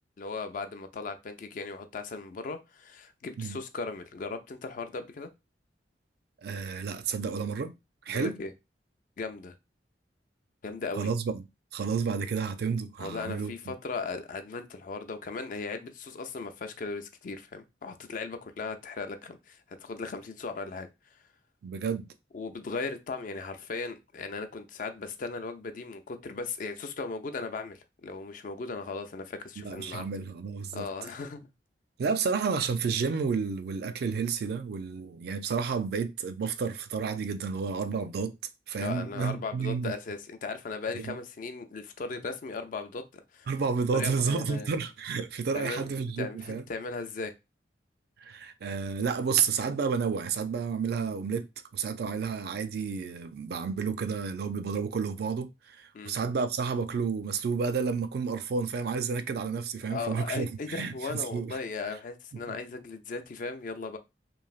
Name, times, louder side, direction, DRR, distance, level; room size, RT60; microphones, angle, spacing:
voice 1, 0.2-5.3 8.1-8.5 9.2-9.5 10.6-11.1 13.0-21.1 22.3-30.0 30.7-31.5 38.8-43.5 43.9-44.7 45.5-47.3 55.9-56.1 59.5-59.6 59.8-64.0, left 4 dB, 45° left, 0.4 m, -37 dB
voice 2, 6.4-7.7 8.1-8.3 11.0-11.4 11.7-13.7 21.6-22.1 29.6-30.9 32.0-38.3 38.7-39.9 41.0-41.1 43.5-46.6 48.2-51.4 51.7-61.6 62.5-62.6, right 5 dB, 60° right, 0.4 m, -31 dB
3.1 x 2.6 x 2.3 m
head